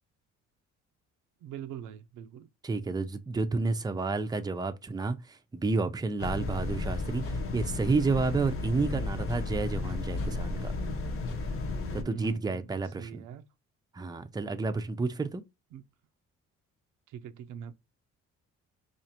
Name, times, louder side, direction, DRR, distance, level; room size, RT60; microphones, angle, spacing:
voice 1, 1.4-2.5 8.7-9.1 12.0-13.5 15.7-15.8 17.1-17.7, right 8 dB, 90° right, 0.6 m, -42 dB
voice 2, 2.6-10.7 11.9-13.2 13.9-15.4, right 3 dB, 15° right, 0.5 m, -30 dB
sound 1, 6.2-6.3 7.2-7.4 8.2-8.3 9.3-9.4 10.1-10.3 11.2-11.4 12.2-12.4, left 4 dB, 90° left, 1.1 m, -49 dB
sound 2, 6.2-12.0, left 3 dB, 45° left, 0.8 m, -33 dB
4.7 x 2.5 x 2.8 m
cardioid pair, 90°, 30 cm